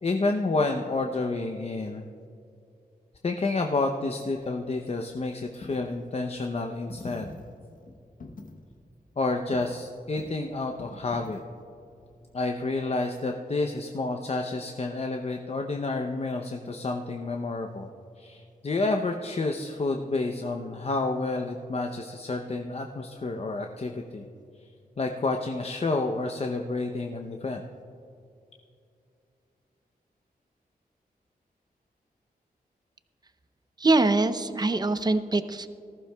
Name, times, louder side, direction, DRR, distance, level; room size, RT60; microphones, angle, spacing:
voice 1, 0.0-2.0 3.2-7.3 9.2-11.4 12.3-17.9 18.2-24.3 25.0-27.6, left 3 dB, 40° left, 3 dB, 0.7 m, -29 dB
Coin (dropping), 4.2-12.8, left 3 dB, 55° left, 1.0 m, -48 dB
voice 2, 33.8-35.7, right 2 dB, 25° right, 10 dB, 0.6 m, -23 dB
19.0 x 14.5 x 2.3 m, 2.5 s
wide cardioid pair, 125°, 16 cm